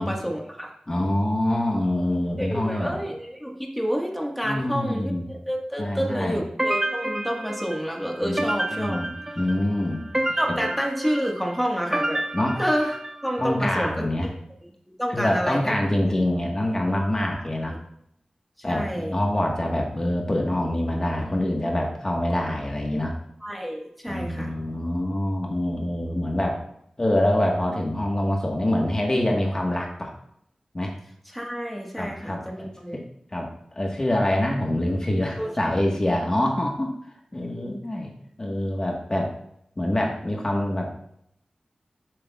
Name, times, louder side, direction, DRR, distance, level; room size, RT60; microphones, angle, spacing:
voice 1, 0.0-0.7 2.4-9.0 10.4-12.2 12.5-13.0 13.2-14.0 15.0-15.7 17.7-17.8 18.6-19.1 23.4-24.5 31.3-33.0 35.4-35.8 37.6-37.8, equal, 5° left, 0 dB, 1.5 m, -29 dB
voice 2, 0.9-3.0 4.4-5.3 5.8-6.4 8.2-8.5 8.8-10.0 10.5-10.6 12.3-12.6 13.4-14.3 15.1-17.8 18.6-23.2 24.1-26.6 27.0-30.1 30.7-30.9 32.0-33.0 33.3-36.9 37.3-38.1 38.4-39.3 39.8-40.9, left 1 dB, 30° left, 0 dB, 1.4 m, -25 dB
sound 1, 6.6-13.5, right 1 dB, 20° right, 0.7 m, -30 dB
11.5 x 8.0 x 2.4 m, 0.72 s
wide cardioid pair, 85°, 2 cm